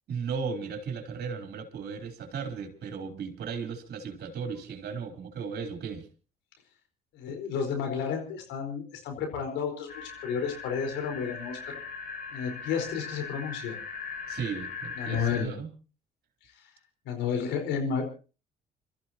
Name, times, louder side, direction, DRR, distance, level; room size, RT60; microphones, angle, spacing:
voice 1, 0.1-6.1 14.3-15.7, right 6 dB, 60° right, 5 dB, 3.6 m, -36 dB
voice 2, 7.1-11.8 12.3-13.8 15.0-15.5 17.0-18.0, left 6 dB, 75° left, 4 dB, 4.6 m, -31 dB
sound 1, 9.9-15.4, left 5 dB, 50° left, 5.0 m, -39 dB
29.5 x 13.5 x 2.9 m, 0.35 s
hypercardioid pair, 55°, 19 cm